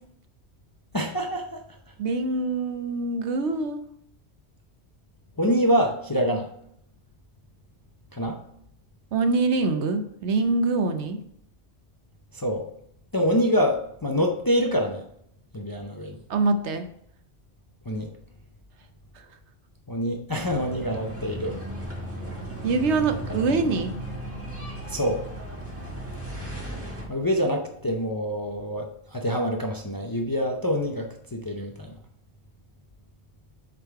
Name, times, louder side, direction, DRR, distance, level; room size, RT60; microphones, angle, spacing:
voice 1, 0.9-1.6 5.4-6.5 8.1-8.4 12.3-12.7 13.1-15.0 15.5-16.2 17.9-18.1 19.9-21.6 23.3-23.4 24.9-25.2 27.1-31.9, equal, 30° left, 3 dB, 0.4 m, -26 dB
voice 2, 2.0-3.8 9.1-11.2 16.3-16.9 22.6-24.0, right 3 dB, 80° right, 7 dB, 1.1 m, -24 dB
sound 1, 20.3-27.1, right 1 dB, 10° right, 1.5 m, -35 dB
7.9 x 3.8 x 4.7 m, 0.71 s
omnidirectional pair, 1.2 m